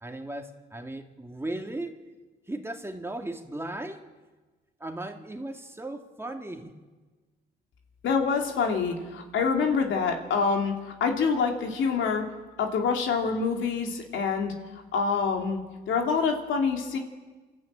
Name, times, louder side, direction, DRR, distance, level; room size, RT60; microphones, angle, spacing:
voice 1, 0.0-2.0 2.5-4.1 4.8-6.8, right 1 dB, 10° right, 4 dB, 2.2 m, -36 dB
voice 2, 8.0-12.3 12.6-14.5 14.9-15.6 15.9-17.0, left 5 dB, 75° left, 3 dB, 3.0 m, -26 dB
28.0 x 12.5 x 8.9 m, 1.3 s
cardioid pair, 90°, 20 cm